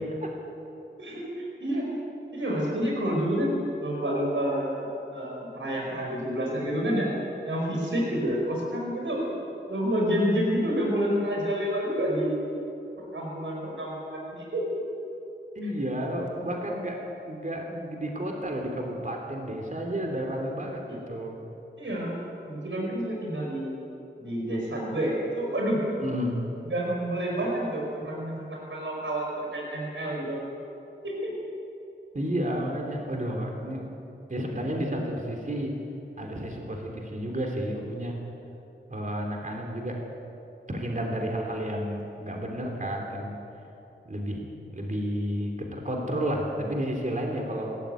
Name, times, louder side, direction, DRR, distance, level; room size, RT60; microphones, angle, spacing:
voice 1, 1.0-1.9 2.3-3.5 3.8-7.1 7.4-9.2 9.7-12.4 13.0-14.8 15.6-15.7 20.9-21.0 21.8-22.2 22.5-23.8 24.2-25.8 26.6-30.4 31.0-31.3, equal, 85° right, -2 dB, 5.0 m, -29 dB
voice 2, 15.6-17.0 17.2-21.4 26.0-26.5 32.1-33.8 34.3-35.8 36.2-38.2 38.9-40.0 40.7-43.4 44.1-47.8, equal, 40° right, 0 dB, 3.3 m, -31 dB
26.5 x 13.5 x 9.2 m, 2.8 s
wide cardioid pair, 80°, 19 cm